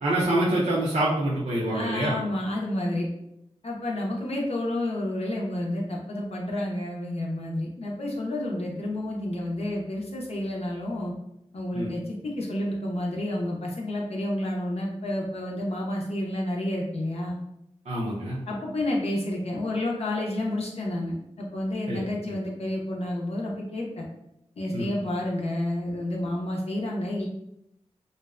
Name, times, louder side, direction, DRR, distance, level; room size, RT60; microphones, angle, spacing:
voice 1, 0.0-2.1 11.7-11.9 17.9-18.4 21.9-22.4 24.7-24.9, right 1 dB, 85° right, -7 dB, 0.5 m, -26 dB
voice 2, 1.7-3.1 3.6-11.1 11.5-17.4 18.5-24.0 24.6-27.3, left 1 dB, 60° left, -2 dB, 0.5 m, -30 dB
2.5 x 2.1 x 2.3 m, 0.80 s
wide cardioid pair, 60°, 12 cm